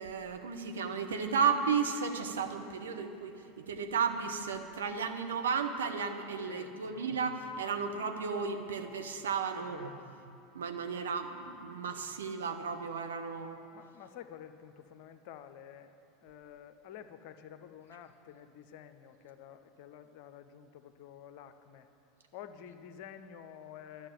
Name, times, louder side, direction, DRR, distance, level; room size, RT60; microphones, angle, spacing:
voice 1, 0.0-9.9 10.5-13.6, right 6 dB, 70° right, 5 dB, 0.9 m, -34 dB
voice 2, 6.5-7.1 9.5-10.1 13.7-15.9 16.2-21.9 22.3-24.1, left 9 dB, 50° left, 10 dB, 0.7 m, -50 dB
11.5 x 7.1 x 9.1 m, 2.6 s
figure-of-eight pair, 80°, 0 cm